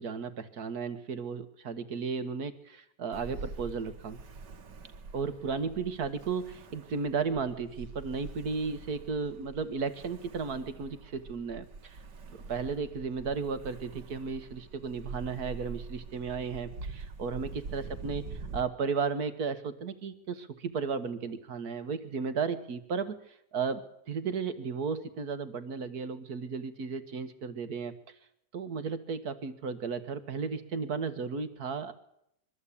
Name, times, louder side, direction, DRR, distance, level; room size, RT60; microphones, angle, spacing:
voice 1, 0.0-4.2 5.1-12.0 12.5-18.3 18.5-23.2 23.5-27.9 28.5-31.9, right 5 dB, 60° right, 11 dB, 1.8 m, -34 dB
Ocean, 3.1-18.6, right 4 dB, 90° right, 2.2 m, -45 dB
23.0 x 14.0 x 8.5 m, 0.77 s
omnidirectional pair, 1.8 m